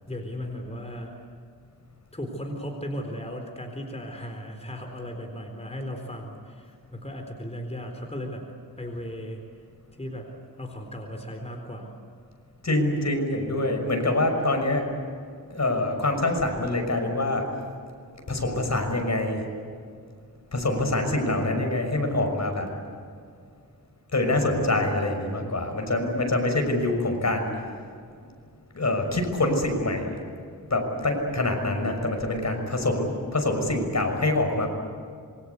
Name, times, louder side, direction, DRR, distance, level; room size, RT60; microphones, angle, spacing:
voice 1, 0.1-1.2 2.1-8.5 8.8-9.4 9.9-10.3 10.6-11.9, equal, 20° left, 3 dB, 4.1 m, -36 dB
voice 2, 12.6-14.9 15.5-17.4 18.3-19.4 20.5-22.7 24.1-27.5 28.7-30.1 30.7-34.7, left 2 dB, 50° left, 4 dB, 6.2 m, -25 dB
27.0 x 24.5 x 8.4 m, 2.2 s
wide cardioid pair, 80°, 35 cm